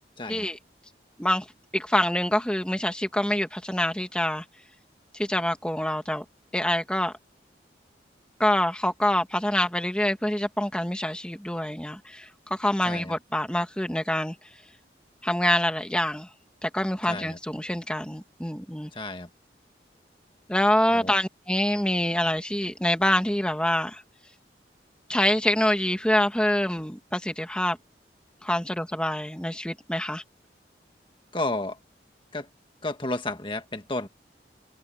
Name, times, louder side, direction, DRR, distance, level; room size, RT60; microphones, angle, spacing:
voice 1, 0.2-0.5 12.8-13.1 17.1-17.4 18.9-19.3 20.9-21.1 31.3-31.8 32.3-32.5 32.8-34.1, left 2 dB, 30° left, 1.6 m, -32 dB
voice 2, 1.7-4.4 5.1-6.2 6.5-7.1 8.4-14.3 15.2-16.3 16.6-18.9 20.5-24.0 25.1-27.8 28.4-30.2, left 1 dB, 5° left, 1.5 m, -26 dB
head